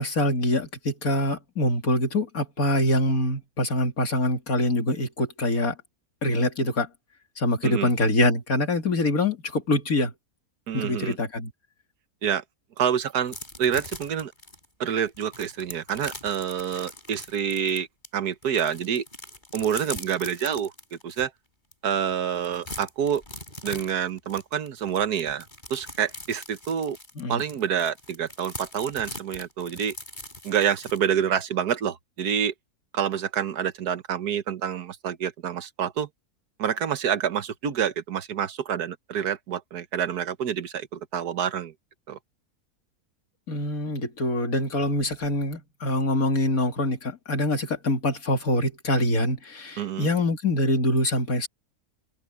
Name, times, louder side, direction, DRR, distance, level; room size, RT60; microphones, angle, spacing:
voice 1, 0.0-5.7 6.2-6.9 7.4-10.1 10.7-11.5 27.2-27.4 43.5-51.5, left 1 dB, 65° left, 3.1 m, -24 dB
voice 2, 10.7-11.2 12.2-12.4 12.8-14.3 14.8-17.9 18.1-19.0 19.5-20.7 21.0-21.3 21.8-23.2 23.6-25.4 25.7-27.0 27.3-29.9 30.4-32.5 32.9-36.1 36.6-41.7 42.1-42.2 49.8-50.1, right 8 dB, 85° right, 1.7 m, -27 dB
sound 1, 13.3-18.1 18.4-21.3 21.7-21.8 22.1-31.0, left 1 dB, 30° left, 7.1 m, -41 dB
omnidirectional pair, 1.6 m